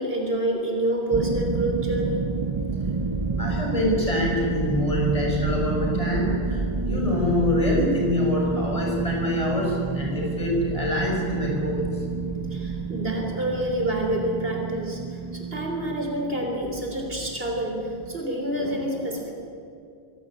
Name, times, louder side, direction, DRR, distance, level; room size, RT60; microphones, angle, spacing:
voice 1, 0.0-2.2 12.5-19.3, right 1 dB, 70° right, 1 dB, 3.8 m, -28 dB
sound 1, 1.1-18.2, right 4 dB, 35° right, 0.9 m, -29 dB
voice 2, 3.4-11.9, left 1 dB, 35° left, -2 dB, 6.4 m, -25 dB
24.0 x 17.0 x 8.9 m, 2.5 s
omnidirectional pair, 1.0 m